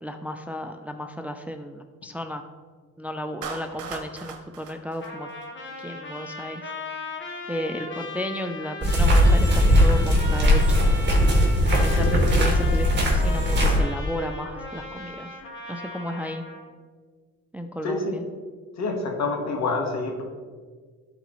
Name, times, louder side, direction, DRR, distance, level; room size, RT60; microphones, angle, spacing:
voice 1, 0.0-2.4 3.0-5.3 5.8-6.7 7.5-10.6 11.8-15.3 15.7-16.4 17.5-18.2, equal, 5° right, 6 dB, 0.4 m, -33 dB
Clapping, 3.4-5.8, right 6 dB, 75° right, 1.0 m, -39 dB
Trumpet, 5.0-16.6, left 2 dB, 40° left, 1.3 m, -38 dB
sound 1, 8.8-13.8, equal, 35° right, 2.0 m, -19 dB
voice 2, 17.8-18.2 18.8-20.2, left 3 dB, 65° left, 2 dB, 1.4 m, -27 dB
12.0 x 4.1 x 3.1 m, 1.5 s
cardioid pair, 90°, 30 cm